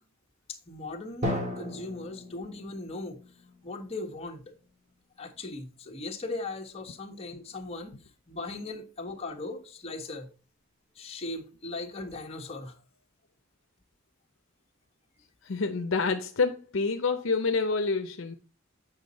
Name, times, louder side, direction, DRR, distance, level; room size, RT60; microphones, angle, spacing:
voice 1, 0.5-3.2 3.6-4.5 5.2-7.9 8.3-10.3 11.0-12.8, left 2 dB, 30° left, 1.3 m, -38 dB
Drum, 1.2-4.9, left 1 dB, 35° right, 2.1 m, -37 dB
voice 2, 15.4-18.4, left 4 dB, 70° left, 0.7 m, -27 dB
8.2 x 5.3 x 4.1 m
head